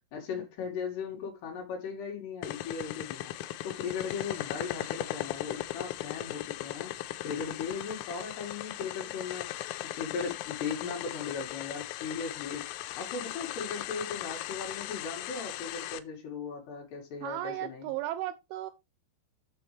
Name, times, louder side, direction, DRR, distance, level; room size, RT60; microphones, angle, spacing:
voice 1, 0.1-3.3 3.6-6.9 7.2-9.5 9.8-12.7 13.0-17.9, left 5 dB, 60° left, 3.9 m, -37 dB
sound 1, 2.4-16.0, left 15 dB, 90° left, 3.4 m, -38 dB
voice 2, 17.2-18.7, right 14 dB, 80° right, 2.8 m, -35 dB
8.7 x 6.9 x 3.3 m
omnidirectional pair, 5.9 m